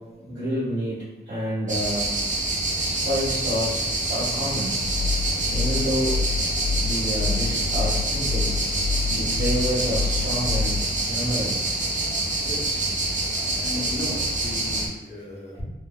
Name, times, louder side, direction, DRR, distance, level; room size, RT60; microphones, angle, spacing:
voice 1, 0.2-2.1 2.8-3.8 4.1-4.8 5.5-6.1 6.8-8.5 9.1-11.7 13.7-13.9, equal, 85° right, -13 dB, 1.5 m, -29 dB
sound 1, 1.7-14.9, right 2 dB, 45° right, 0.6 m, -26 dB
sound 2, 4.8-10.9, left 4 dB, 65° left, 0.9 m, -28 dB
voice 2, 12.4-12.8 13.6-15.6, left 1 dB, 35° left, -4 dB, 0.9 m, -35 dB
3.0 x 2.0 x 2.4 m, 1.1 s
wide cardioid pair, 65°, 19 cm